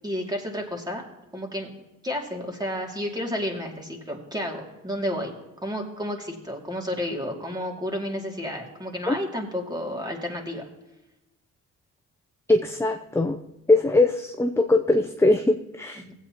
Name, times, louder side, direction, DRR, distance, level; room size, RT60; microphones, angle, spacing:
voice 1, 0.0-1.0 1.3-1.7 2.0-5.3 5.6-10.7 16.0-16.1, equal, 15° right, 0 dB, 2.4 m, -31 dB
voice 2, 12.5-13.4 13.7-16.0, left 2 dB, 10° left, 4 dB, 0.6 m, -21 dB
16.0 x 8.4 x 2.9 m, 0.98 s
cardioid pair, 90°, 30 cm